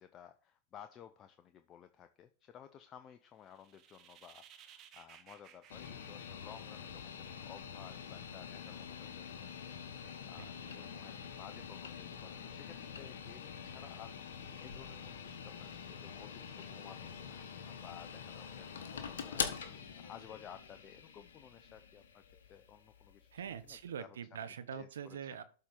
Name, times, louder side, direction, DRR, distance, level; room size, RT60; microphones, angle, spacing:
voice 1, 0.0-22.2 22.5-24.2 24.7-25.2, left 9 dB, 35° left, 9 dB, 0.6 m, -56 dB
sound 1, 3.4-7.0, right 9 dB, 40° right, 1.1 m, -59 dB
sound 2, 5.7-23.8, left 7 dB, 70° left, 1.3 m, -45 dB
voice 2, 10.4-10.8 23.3-25.4, right 8 dB, 75° right, 12 dB, 0.8 m, -44 dB
12.0 x 4.4 x 3.9 m, 0.40 s
hypercardioid pair, 100°, 0 cm